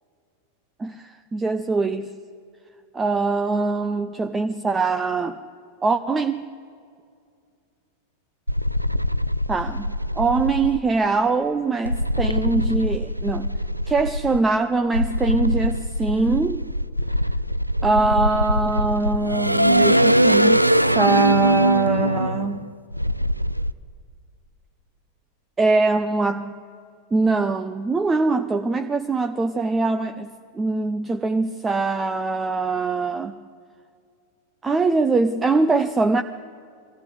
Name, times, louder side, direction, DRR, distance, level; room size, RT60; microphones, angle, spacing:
voice 1, 0.8-2.1 2.9-5.4 5.8-6.5 9.5-13.6 13.9-16.6 17.8-22.7 25.6-26.6 27.1-33.4 34.6-36.2, right 3 dB, 15° right, 0.7 m, -23 dB
sound 1, 8.5-10.8 11.9-14.4 14.9-23.7, equal, 90° right, 0.4 m, -22 dB
23.0 x 15.0 x 8.2 m
figure-of-eight pair, 90°, 0 cm